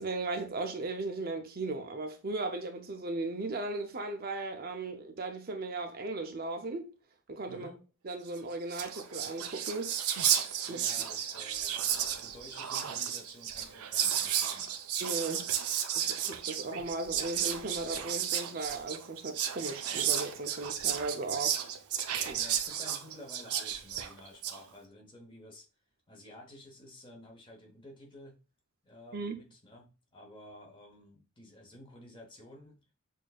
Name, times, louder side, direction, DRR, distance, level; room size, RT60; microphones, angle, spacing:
voice 1, 0.0-6.9 7.3-7.7 8.0-9.9 10.7-10.9 15.0-15.5 15.9-21.6 22.3-22.4 29.1-29.4, right 2 dB, 45° right, 0.5 m, -37 dB
voice 2, 7.5-7.8 10.6-14.7 22.3-25.7 26.1-28.4 28.8-32.8, left 1 dB, 20° left, 0.9 m, -52 dB
Whispering, 8.4-8.5 8.6-24.6, right 9 dB, 90° right, 0.5 m, -33 dB
6.2 x 2.6 x 2.3 m
head